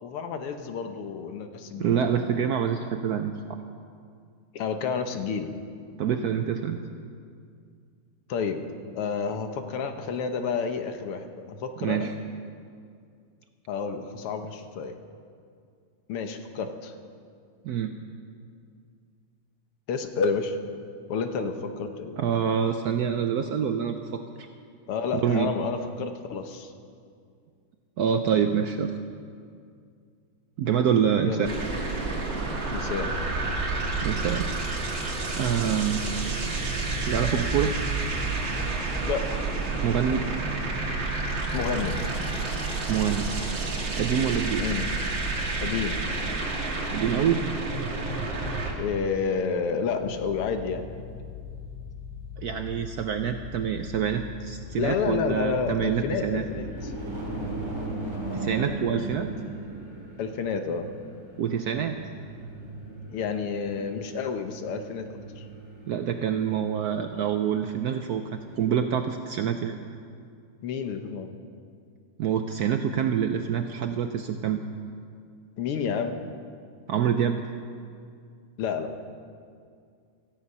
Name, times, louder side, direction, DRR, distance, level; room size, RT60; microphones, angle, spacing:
voice 1, 0.0-2.1 4.5-5.5 8.3-8.6 9.0-12.1 13.7-15.0 16.1-16.9 19.9-20.6 21.1-22.2 24.9-26.7 31.2-31.5 32.7-33.1 39.0-39.5 41.5-42.0 44.6-44.9 45.6-46.0 48.8-50.9 54.8-56.9 60.2-60.9 63.1-65.1 65.4-65.5 70.6-71.3 75.6-76.2 78.6-78.9, left 5 dB, 85° left, 7 dB, 2.0 m, -30 dB
voice 2, 1.8-3.6 6.0-6.8 11.8-12.1 17.6-18.0 22.2-24.5 25.2-25.5 28.0-28.9 30.6-31.5 34.0-34.5 35.4-36.0 37.1-37.8 39.8-40.3 42.9-43.3 44.0-44.7 46.9-47.5 52.4-56.4 58.3-59.3 61.4-61.9 65.9-69.7 72.2-74.6 76.9-77.4, right 8 dB, 90° right, 7 dB, 0.8 m, -26 dB
sound 1, 31.4-48.7, right 3 dB, 55° right, 2.7 m, -29 dB
sound 2, 49.9-57.7, left 6 dB, 65° left, 4.3 m, -41 dB
sound 3, 54.7-68.7, right 2 dB, 10° right, 3.5 m, -39 dB
17.5 x 14.0 x 5.6 m, 2.3 s
omnidirectional pair, 2.4 m